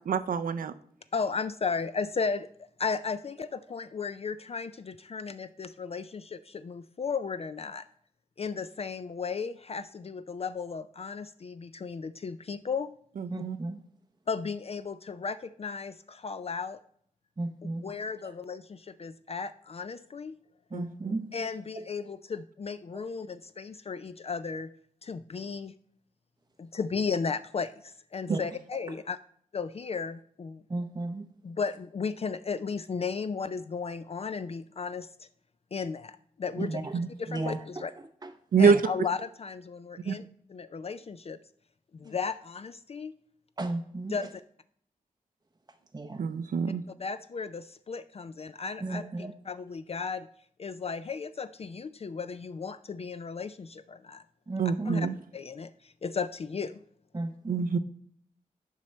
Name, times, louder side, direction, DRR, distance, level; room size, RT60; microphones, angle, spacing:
voice 1, 0.1-0.7 13.2-13.6 20.7-21.2 28.3-28.4 36.9-37.1 38.5-38.8 40.1-40.2 46.2-46.8 54.6-55.1 57.5-57.8, right 6 dB, 75° right, 11 dB, 0.5 m, -26 dB
voice 2, 1.1-2.5 2.8-7.8 8.4-12.9 14.3-16.8 17.8-20.4 21.3-24.7 25.0-25.7 26.6-29.2 29.5-30.6 31.4-35.1 35.7-36.1 36.4-36.8 37.2-37.9 38.6-41.4 42.0-43.1 44.1-44.3 47.0-50.3 50.6-54.2 54.9-55.1 55.3-55.7 56.0-56.7, left 5 dB, 45° left, 12 dB, 0.4 m, -35 dB
voice 3, 13.3-13.8 17.4-17.9 20.7-21.3 21.7-21.8 22.9-23.0 28.3-28.4 30.7-31.3 36.6-37.0 37.3-38.3 38.6-38.8 43.6-44.1 45.9-46.2 48.8-49.3 54.5-54.9 57.1-57.7, right 2 dB, 25° right, 4 dB, 0.5 m, -35 dB
7.4 x 5.1 x 4.3 m, 0.62 s
cardioid pair, 45°, 14 cm